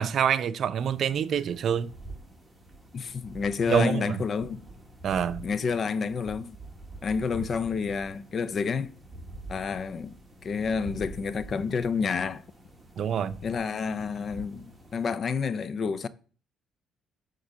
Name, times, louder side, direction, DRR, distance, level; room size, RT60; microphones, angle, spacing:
voice 1, 0.0-1.9 3.7-4.2 5.0-5.4 13.0-13.4, right 8 dB, 50° right, 0.5 m, -26 dB
sound 1, 0.8-15.2, right 2 dB, 5° right, 1.7 m, -46 dB
voice 2, 2.9-4.6 5.4-6.6 7.0-8.9 9.5-10.1 10.4-12.4 13.4-14.7 14.9-16.1, left 5 dB, 40° left, 0.5 m, -29 dB
9.7 x 3.8 x 6.2 m
cardioid pair, 125°, 0 cm